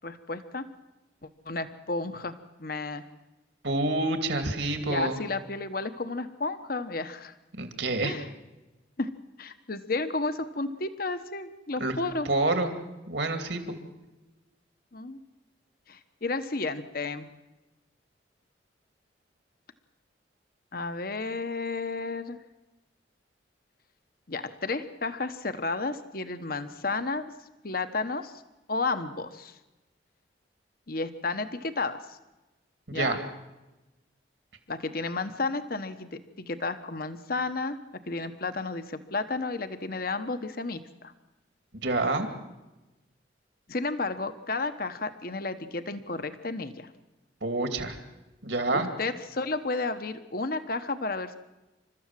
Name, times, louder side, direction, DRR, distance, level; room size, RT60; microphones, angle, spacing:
voice 1, 0.0-0.7 1.4-3.0 4.9-7.3 8.0-8.3 9.0-9.1 9.4-12.3 14.9-15.2 15.9-17.3 20.7-22.4 24.3-27.2 27.6-28.3 28.7-29.5 30.9-32.2 32.9-33.2 34.7-37.8 38.1-41.1 43.7-46.9 48.7-51.3, left 3 dB, 50° left, 10 dB, 1.1 m, -32 dB
voice 2, 3.6-5.2 7.6-8.2 11.8-11.9 12.2-12.7 13.1-13.7 32.9-33.2 41.7-42.3 47.4-47.9 48.4-48.9, right 2 dB, 70° right, 6 dB, 2.6 m, -27 dB
29.0 x 13.5 x 7.6 m, 1.0 s
head